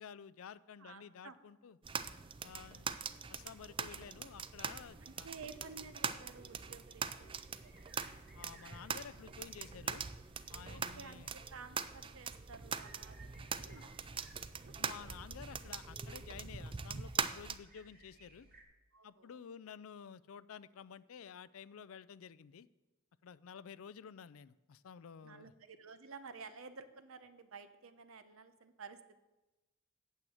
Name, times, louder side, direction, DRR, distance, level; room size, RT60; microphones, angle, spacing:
voice 1, 0.0-1.8 2.4-2.9 3.3-5.3 8.3-10.0 10.5-11.3 14.8-18.5 19.0-22.7 23.2-25.5, left 7 dB, 75° left, 18 dB, 0.4 m, -52 dB
voice 2, 0.8-1.4 2.6-3.0 5.0-8.1 10.6-14.7 18.9-19.4 25.2-29.1, right 4 dB, 70° right, 11 dB, 0.9 m, -53 dB
sound 1, 1.8-17.6, right 6 dB, 25° right, 0.4 m, -42 dB
sound 2, 4.9-18.6, right 2 dB, 45° right, 2.5 m, -64 dB
9.0 x 7.8 x 7.7 m, 1.1 s
head